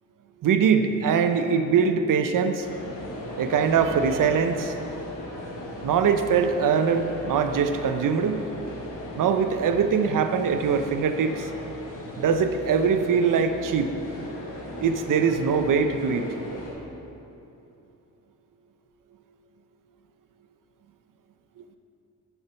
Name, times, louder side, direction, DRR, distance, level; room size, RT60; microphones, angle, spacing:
voice 1, 0.4-2.7 3.4-4.7 5.8-8.4 9.2-11.5 12.2-13.9 14.8-16.3, right 6 dB, 75° right, 8 dB, 0.7 m, -22 dB
sound 1, 2.6-16.7, left 1 dB, 75° left, 2.4 m, -37 dB
7.2 x 6.9 x 6.9 m, 2.8 s
wide cardioid pair, 125°, 32 cm